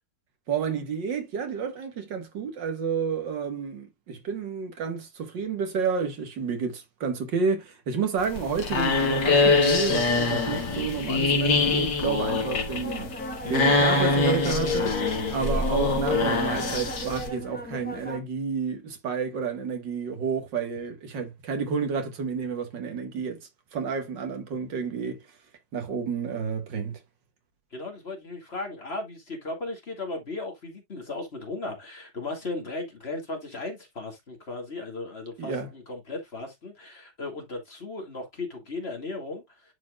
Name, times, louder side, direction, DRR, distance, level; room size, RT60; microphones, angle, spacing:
voice 1, 0.5-13.1 13.5-15.0 15.3-25.2 25.7-27.0 35.4-35.7, right 5 dB, 85° right, 2.3 m, -30 dB
sound 1, 8.2-17.3, left 3 dB, 70° left, 2.4 m, -24 dB
sound 2, 12.8-18.2, left 3 dB, 5° left, 1.0 m, -33 dB
voice 2, 27.7-39.7, left 2 dB, 35° left, 2.2 m, -36 dB
10.5 x 4.4 x 2.3 m
omnidirectional pair, 1.9 m